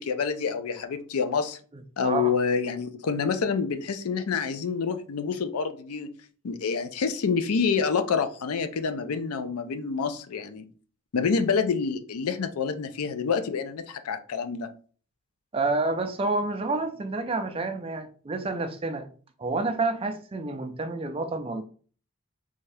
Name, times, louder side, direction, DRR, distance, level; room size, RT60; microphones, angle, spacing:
voice 1, 0.0-1.6 2.0-6.1 6.4-10.7 11.1-14.7, left 5 dB, 85° left, 0.5 m, -27 dB
voice 2, 1.7-2.3 15.5-19.1 19.4-21.6, right 3 dB, 25° right, 0.3 m, -29 dB
3.4 x 2.7 x 3.3 m
head